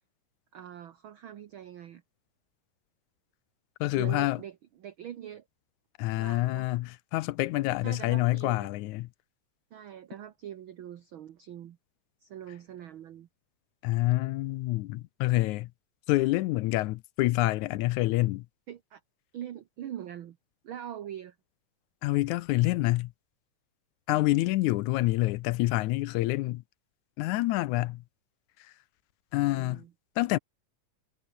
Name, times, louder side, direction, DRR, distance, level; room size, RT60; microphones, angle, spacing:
voice 1, 0.5-2.0 3.9-5.4 6.2-6.7 7.8-8.7 9.7-11.8 12.2-13.3 18.7-19.0 19.3-20.4 20.6-21.4 29.4-29.9, right 10 dB, 65° right, 1.3 m, -43 dB
voice 2, 3.8-4.4 6.0-9.1 13.8-15.7 16.1-18.5 22.0-23.1 24.1-26.6 27.2-28.0 29.3-29.8 30.2-30.4, left 18 dB, 80° left, 2.0 m, -27 dB
omnidirectional pair, 3.5 m